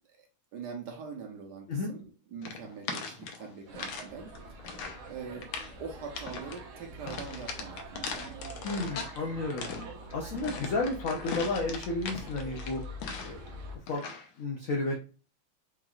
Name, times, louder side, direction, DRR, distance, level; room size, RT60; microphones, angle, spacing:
voice 1, 0.2-4.8 5.1-5.5 5.8-8.4, right 5 dB, 65° right, 3 dB, 1.2 m, -43 dB
sound 1, 2.4-4.1 4.4-5.0 5.4-5.8 6.1-6.6 7.1-9.2 9.5-13.5 13.9-14.3, left 5 dB, 70° left, 1.4 m, -39 dB
sound 2, 3.7-13.8, right 1 dB, 90° right, 1.8 m, -45 dB
voice 2, 8.6-9.7 10.1-12.8 13.2-13.4 13.9-14.0 14.4-14.9, left 2 dB, 90° left, 1 dB, 0.7 m, -32 dB
4.9 x 3.1 x 2.4 m, 0.37 s
omnidirectional pair, 2.3 m